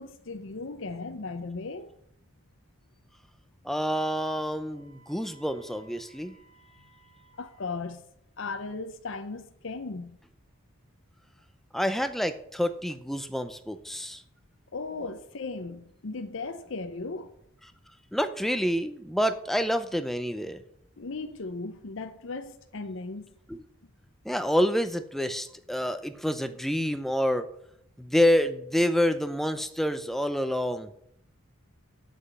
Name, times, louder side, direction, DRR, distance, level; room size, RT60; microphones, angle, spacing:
voice 1, 0.0-1.9 7.4-8.0 8.4-10.2 14.7-17.3 21.0-23.3, left 3 dB, 60° left, 0.7 m, -37 dB
voice 2, 3.6-6.3 11.7-14.2 18.1-20.6 23.5-23.6 24.2-27.5 28.0-30.9, equal, ahead, 0.6 m, -27 dB
Wind instrument woodwind instrument, 3.7-7.8, equal, 80° right, 2.7 m, -59 dB
7.5 x 6.2 x 7.9 m
head